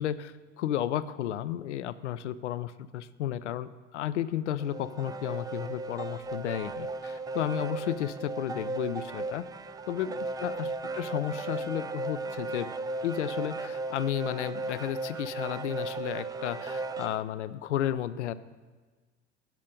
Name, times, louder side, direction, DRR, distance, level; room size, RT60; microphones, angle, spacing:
voice 1, 0.0-9.5 9.9-12.7 13.0-18.3, left 11 dB, 70° left, 15 dB, 0.6 m, -33 dB
sound 1, 4.6-17.2, right 3 dB, 10° right, 0.4 m, -36 dB
13.5 x 8.5 x 5.2 m, 1.4 s
figure-of-eight pair, 75°, 36 cm